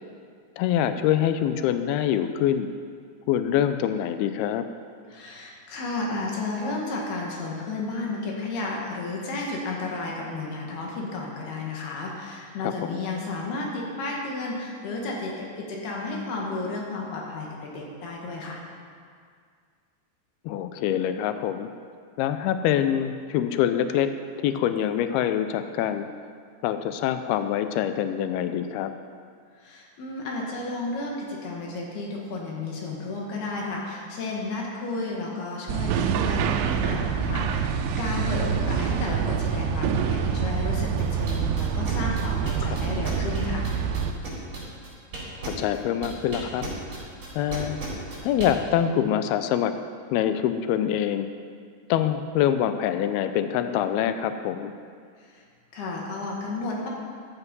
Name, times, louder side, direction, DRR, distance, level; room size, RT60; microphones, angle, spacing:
voice 1, 0.6-2.7 3.3-4.6 12.6-13.0 20.5-21.7 22.2-24.1 24.4-26.1 26.6-28.9 42.6-43.1 45.4-46.7 47.4-47.8 48.2-49.7 50.1-51.3 51.9-54.7, left 10 dB, 85° left, 10 dB, 2.2 m, -25 dB
voice 2, 5.1-18.6 29.6-43.6 55.3-55.4 55.7-56.9, left 3 dB, 65° left, -2 dB, 3.7 m, -32 dB
sound 1, 35.7-44.1, right 7 dB, 85° right, 3.0 m, -26 dB
sound 2, 41.0-48.5, right 4 dB, 30° right, 4.2 m, -35 dB
14.0 x 12.0 x 5.4 m, 2.1 s
omnidirectional pair, 5.1 m